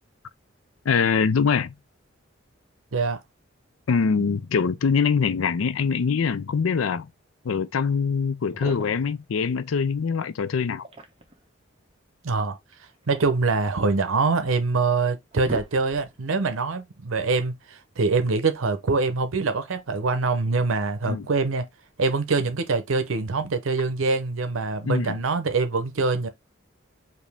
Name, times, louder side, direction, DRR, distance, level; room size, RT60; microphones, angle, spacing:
voice 1, 0.9-1.7 3.9-7.1 7.4-10.9 21.1-21.3 24.8-25.1, left 5 dB, 90° left, 0.5 m, -23 dB
sound 1, 8.4-9.2 10.6-11.4 12.7-14.1 14.7-14.8 15.1-16.3, right 1 dB, 30° right, 0.9 m, -41 dB
voice 2, 12.2-12.6 13.1-21.7 22.0-26.3, right 4 dB, 90° right, 0.7 m, -24 dB
5.1 x 2.7 x 3.4 m
head